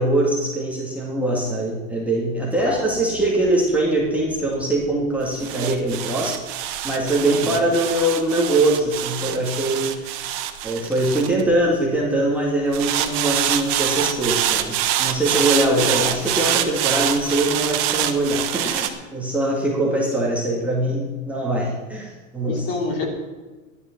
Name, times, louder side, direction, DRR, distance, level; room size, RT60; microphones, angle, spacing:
voice 1, 0.0-10.2 10.6-22.7, right 1 dB, 5° right, -5 dB, 2.1 m, -22 dB
voice 2, 2.6-3.0 7.2-7.6 15.8-16.0 22.5-23.1, left 3 dB, 35° left, 1 dB, 3.1 m, -28 dB
sound 1, 2.6-12.0 12.7-18.9, right 11 dB, 35° right, 1.2 m, -25 dB
14.5 x 11.0 x 5.9 m, 1.3 s
supercardioid pair, 155°, 42 cm